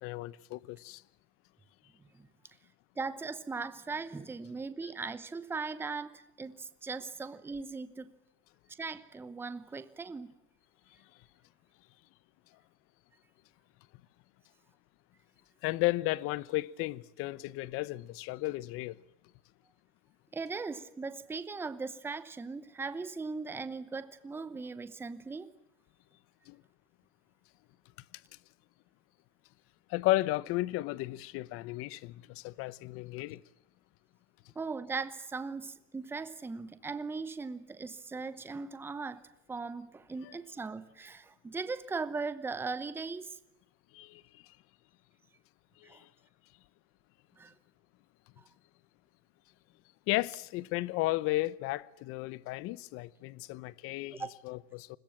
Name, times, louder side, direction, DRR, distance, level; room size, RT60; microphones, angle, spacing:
voice 1, 0.0-1.0 15.6-19.0 26.5-26.6 29.9-33.4 43.9-44.2 45.9-46.0 50.1-55.0, left 18 dB, 35° left, 0.9 m, -34 dB
voice 2, 3.0-8.1 8.8-10.3 20.3-25.5 34.5-39.2 39.5-43.4 45.8-46.0 47.4-47.5 54.1-54.3, right 4 dB, 5° right, 0.9 m, -39 dB
29.5 x 21.5 x 7.4 m
supercardioid pair, 160°, 37 cm